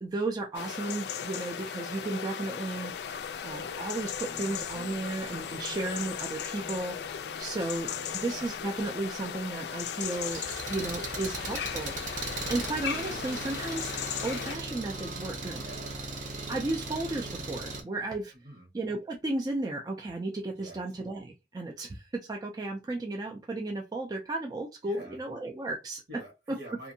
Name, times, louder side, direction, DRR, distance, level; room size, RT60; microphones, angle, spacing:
voice 1, 0.0-10.4 10.7-13.9 14.2-15.6 16.5-18.3 18.7-26.0 26.5-26.6, right 2 dB, 20° right, 0.3 m, -34 dB
sound 1, 0.5-14.6, left 8 dB, 65° left, 0.3 m, -37 dB
sound 2, 2.8-10.4, left 1 dB, 25° left, 0.8 m, -54 dB
voice 2, 7.9-8.2 11.2-11.4 15.6-15.9 18.3-18.7 20.6-20.8 24.8-25.2 26.1-26.9, right 1 dB, 70° right, 1.3 m, -47 dB
Engine, 10.0-17.8, right 3 dB, 45° right, 0.8 m, -38 dB
2.6 x 2.5 x 2.6 m
head